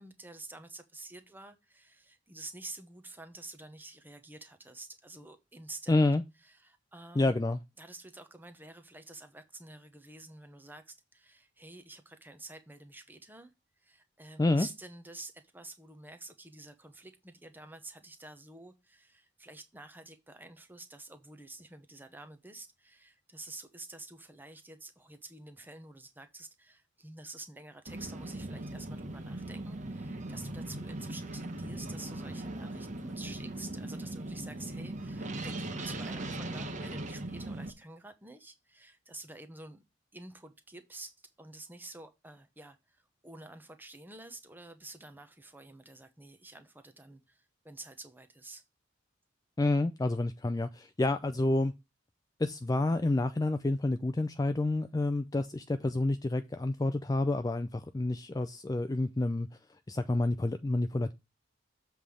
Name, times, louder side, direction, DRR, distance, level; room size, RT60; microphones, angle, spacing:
voice 1, 0.0-6.0 6.4-7.4 7.8-13.5 13.8-39.8 40.1-48.6, right 2 dB, 10° right, 0.9 m, -49 dB
voice 2, 5.9-6.2 7.2-7.6 14.4-14.7 49.6-51.7 52.4-59.5 59.9-61.1, left 2 dB, 20° left, 0.3 m, -29 dB
sound 1, 27.9-37.7, right 2 dB, 40° right, 1.0 m, -39 dB
7.5 x 3.4 x 6.2 m
head